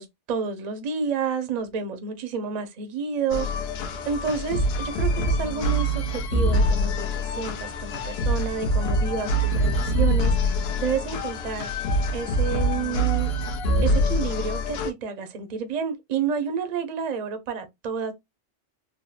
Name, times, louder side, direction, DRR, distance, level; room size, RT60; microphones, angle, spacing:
voice 1, 0.0-11.7 12.1-13.3 13.8-18.1, right 6 dB, 45° right, 0.6 m, -30 dB
sound 1, 3.3-14.9, equal, 65° left, 0.8 m, -24 dB
3.5 x 2.0 x 2.4 m
omnidirectional pair, 1.2 m